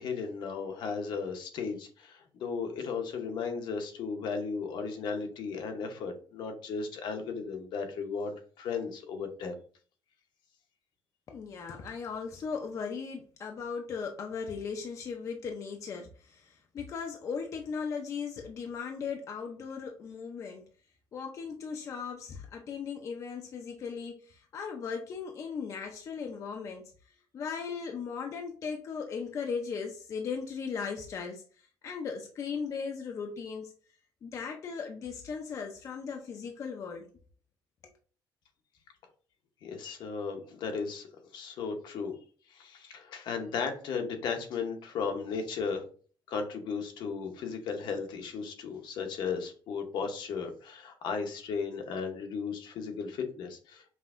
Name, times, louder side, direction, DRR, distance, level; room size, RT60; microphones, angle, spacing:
voice 1, 0.0-9.5 39.6-41.1 41.3-42.1 42.5-45.8 46.3-53.9, left 5 dB, 70° left, 4 dB, 0.8 m, -35 dB
voice 2, 11.3-20.6 21.1-26.9 27.3-33.7 34.2-37.1 37.8-37.9, left 5 dB, 40° left, 3 dB, 0.5 m, -37 dB
5.5 x 2.6 x 2.4 m, 0.42 s
cardioid pair, 155°, 8 cm